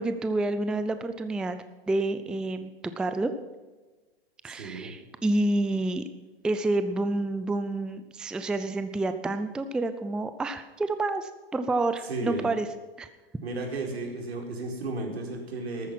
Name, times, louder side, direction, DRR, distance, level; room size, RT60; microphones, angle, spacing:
voice 1, 0.0-1.6 1.9-2.7 3.0-3.3 4.4-6.0 6.4-12.7 13.0-13.1, right 2 dB, 5° right, 10 dB, 0.4 m, -28 dB
voice 2, 4.5-4.9 12.0-12.5 13.4-15.9, right 2 dB, 85° right, 1 dB, 4.7 m, -34 dB
13.5 x 13.0 x 5.9 m, 1.3 s
hypercardioid pair, 130°, 31 cm